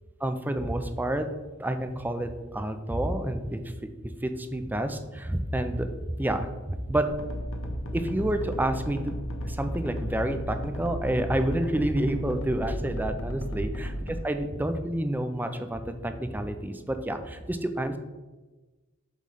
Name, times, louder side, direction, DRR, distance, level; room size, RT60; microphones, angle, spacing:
voice 1, 0.2-1.3 1.6-3.7 4.2-5.9 6.2-7.1 7.9-9.1 9.4-13.9 14.2-18.0, right 1 dB, 10° right, 7 dB, 0.4 m, -29 dB
sound 1, 7.1-14.2, equal, 75° left, 0.9 m, -34 dB
7.3 x 3.2 x 5.5 m, 1.2 s
head